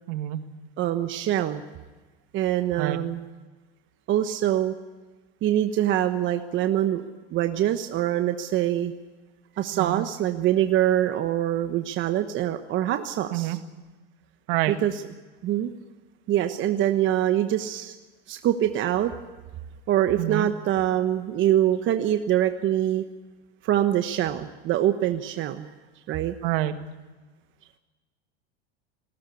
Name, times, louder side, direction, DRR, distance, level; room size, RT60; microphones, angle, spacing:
voice 1, 0.1-0.4 2.8-3.0 9.7-10.0 13.3-13.6 14.5-14.8 20.2-20.5 26.4-26.8, right 15 dB, 60° right, 9 dB, 1.9 m, -27 dB
voice 2, 0.8-1.6 2.3-3.2 4.1-4.7 5.4-7.0 7.3-8.9 9.6-13.6 14.7-14.9 15.4-15.7 16.3-17.9 18.3-19.1 19.9-23.0 23.6-25.7 26.1-26.3, right 12 dB, 40° right, 8 dB, 1.2 m, -24 dB
20.5 x 17.5 x 8.4 m, 1.3 s
hypercardioid pair, 105°, 31 cm